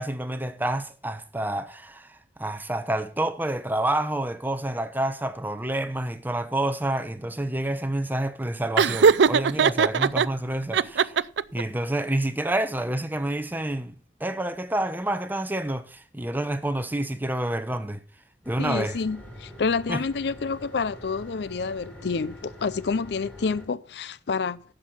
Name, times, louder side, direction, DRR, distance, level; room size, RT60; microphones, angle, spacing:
voice 1, 0.0-11.2 11.5-13.9 14.2-18.0 18.5-19.0 19.9-20.0, right 1 dB, 10° right, 0.9 m, -28 dB
Laughter, 8.8-10.3 10.7-11.6, right 6 dB, 75° right, 0.4 m, -19 dB
sound 1, 18.4-23.7, left 1 dB, 5° left, 3.3 m, -45 dB
voice 2, 18.6-24.6, left 4 dB, 65° left, 0.5 m, -28 dB
11.5 x 7.7 x 5.6 m
head